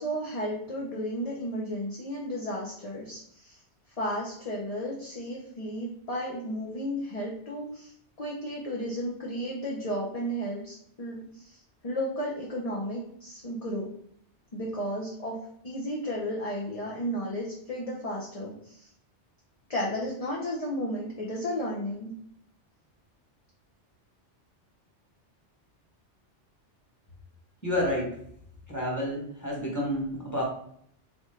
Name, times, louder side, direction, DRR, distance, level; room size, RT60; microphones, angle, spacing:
voice 1, 0.0-3.6 4.0-7.9 8.2-11.6 11.8-13.9 14.5-15.4 15.6-18.9 19.7-22.1, equal, 35° left, -3 dB, 0.8 m, -33 dB
voice 2, 27.6-28.2 28.7-30.4, left 1 dB, 15° left, -3 dB, 1.4 m, -29 dB
4.1 x 3.8 x 3.2 m, 0.68 s
omnidirectional pair, 1.2 m